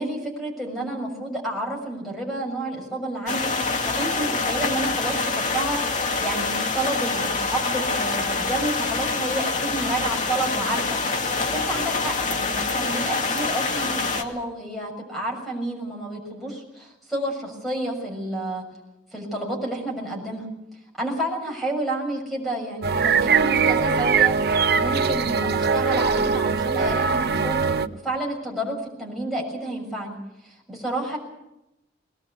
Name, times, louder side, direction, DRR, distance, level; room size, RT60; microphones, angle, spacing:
voice 1, 0.0-3.5 3.8-5.8 6.2-11.0 11.4-18.7 19.1-20.5 21.0-24.3 24.8-30.2 30.4-31.2, right 1 dB, ahead, -1 dB, 6.6 m, -30 dB
sound 1, 3.3-14.2, left 3 dB, 45° left, 2.3 m, -26 dB
sound 2, 22.8-27.9, right 5 dB, 60° right, 0.9 m, -21 dB
21.0 x 20.5 x 8.3 m, 0.89 s
head